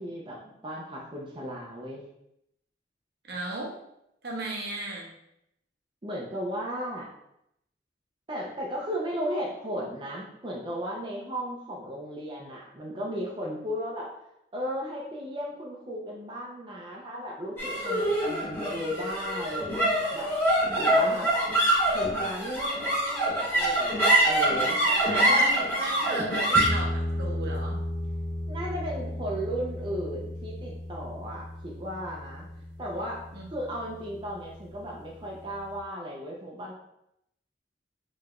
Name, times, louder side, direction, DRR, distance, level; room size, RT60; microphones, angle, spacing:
voice 1, 0.0-2.1 6.0-7.1 8.3-14.1 14.5-20.3 20.7-21.3 21.9-24.8 25.1-25.5 28.5-32.5 32.8-33.2 33.5-36.7, equal, 30° right, -4 dB, 0.6 m, -35 dB
voice 2, 3.3-3.7 4.2-5.1 24.9-27.8 33.3-33.5, right 2 dB, 65° right, -2 dB, 0.9 m, -35 dB
sound 1, 17.6-34.1, right 1 dB, 15° left, 1.0 m, -27 dB
4.6 x 3.1 x 2.5 m, 0.79 s
head